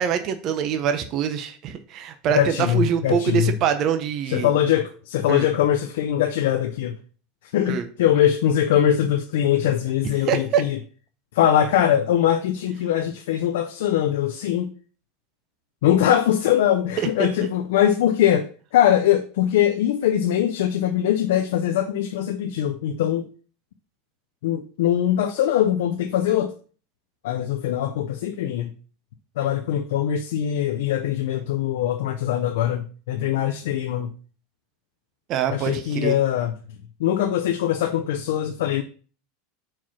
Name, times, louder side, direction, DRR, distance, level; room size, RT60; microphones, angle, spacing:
voice 1, 0.0-4.5 5.3-5.5 7.7-7.9 10.2-10.6 17.2-17.3 35.3-36.2, right 8 dB, 35° right, 0.6 m, -24 dB
voice 2, 2.3-3.5 4.3-6.9 7.5-10.8 11.3-14.7 15.8-23.3 24.4-26.5 27.2-28.7 29.4-34.1 35.5-36.5 37.0-38.8, left 11 dB, 75° left, 0.6 m, -22 dB
4.7 x 4.4 x 5.8 m
supercardioid pair, 165°, 0 cm